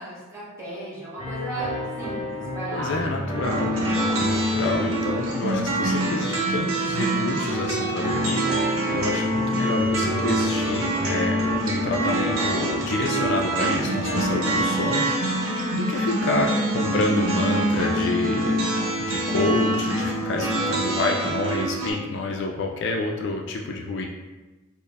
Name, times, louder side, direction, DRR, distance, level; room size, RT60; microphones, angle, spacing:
voice 1, 0.0-3.2 3.7-4.2 8.6-9.0 14.8-14.9 15.3-15.4, right 2 dB, 15° right, -9 dB, 1.1 m, -36 dB
sound 1, 1.2-7.0 8.0-15.4, left 2 dB, 25° left, 0.9 m, -33 dB
voice 2, 2.7-3.8 4.2-15.4 15.7-18.7 19.0-24.1, left 2 dB, 55° left, 1 dB, 0.3 m, -28 dB
sound 2, 3.4-21.9, right 1 dB, 75° right, 0.7 m, -25 dB
4.3 x 2.0 x 3.3 m, 1.2 s
head